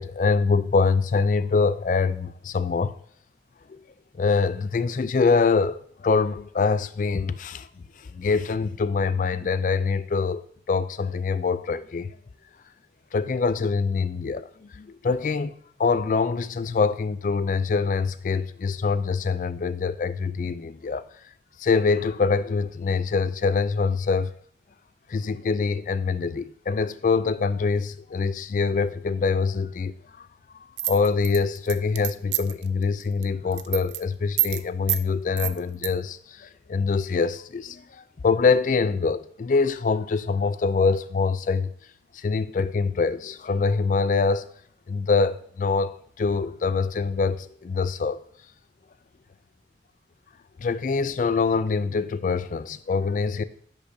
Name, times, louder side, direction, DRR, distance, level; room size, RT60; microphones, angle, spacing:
voice 1, 0.0-2.9 4.2-7.7 8.1-12.1 13.1-14.4 14.8-15.5 15.8-21.0 21.6-24.3 25.1-30.3 30.5-37.8 38.2-41.7 42.2-44.4 44.9-48.2 50.6-53.4, left 4 dB, 45° left, 0.3 m, -24 dB
sound 1, 30.8-32.6 33.0-33.2 33.5-34.0 34.4-34.6 34.9-35.0 35.4-35.9, right 14 dB, 75° right, 0.4 m, -26 dB
10.0 x 5.4 x 2.7 m
head